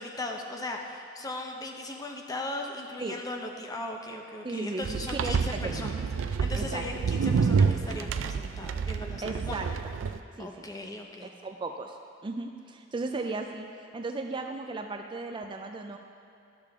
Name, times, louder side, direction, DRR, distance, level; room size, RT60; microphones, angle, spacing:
voice 1, 0.0-9.6 10.4-11.3, left 2 dB, 20° left, 2 dB, 0.7 m, -38 dB
voice 2, 4.4-5.9 6.5-6.9 9.2-9.7 10.4-10.7 11.2-12.0 12.2-16.0, right 3 dB, 25° right, 4 dB, 0.4 m, -36 dB
sound 1, 4.8-10.2, right 5 dB, 90° right, 0.4 m, -28 dB
12.5 x 6.6 x 3.5 m, 2.6 s
head